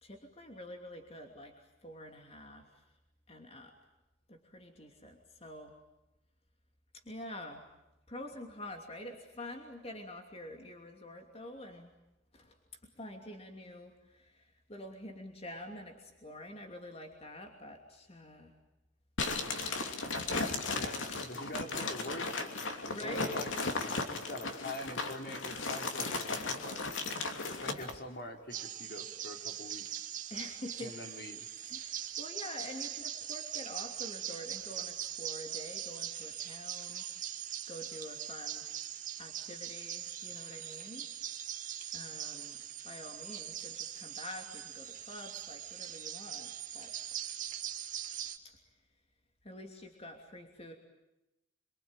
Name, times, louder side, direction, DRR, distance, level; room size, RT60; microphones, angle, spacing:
voice 1, 0.0-2.9 3.3-3.7 4.3-5.7 6.9-7.6 8.1-11.9 12.3-12.6 12.9-18.6 20.3-20.7 22.9-23.4 27.7-27.9 30.3-31.0 31.7-37.4 37.7-38.7 39.2-41.5 41.9-47.0 48.4-48.6 49.4-50.7, left 1 dB, 30° left, 3 dB, 2.9 m, -47 dB
sound 1, 19.2-28.0, left 3 dB, 85° left, 2.9 m, -36 dB
voice 2, 20.7-23.5 24.1-26.8 27.6-30.1 30.8-31.5, left 1 dB, 55° left, 3 dB, 3.7 m, -44 dB
sound 2, 28.5-48.4, right 10 dB, 40° right, 2.1 m, -41 dB
27.5 x 24.0 x 9.0 m, 0.94 s
head